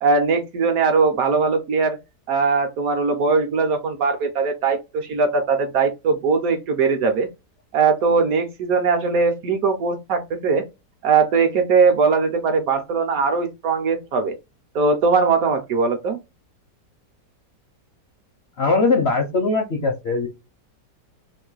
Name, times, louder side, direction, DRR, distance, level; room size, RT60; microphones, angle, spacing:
voice 1, 0.0-2.0 2.3-7.3 7.7-10.6 11.0-14.3 14.7-16.2, right 4 dB, 65° right, 1.0 m, -20 dB
voice 2, 18.6-20.3, left 3 dB, 65° left, 0.6 m, -20 dB
3.0 x 2.5 x 3.8 m
omnidirectional pair, 1.8 m